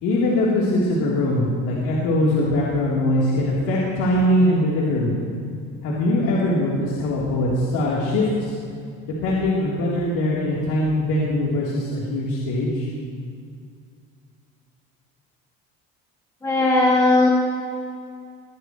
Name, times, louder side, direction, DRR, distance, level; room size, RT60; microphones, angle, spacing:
voice 1, 0.0-5.2 5.8-8.5 9.0-12.9, left 1 dB, 75° left, -6 dB, 3.8 m, -22 dB
voice 2, 16.4-17.3, left 2 dB, 10° left, -2 dB, 1.3 m, -17 dB
22.0 x 18.5 x 3.3 m, 2.3 s
cardioid pair, 160°, 31 cm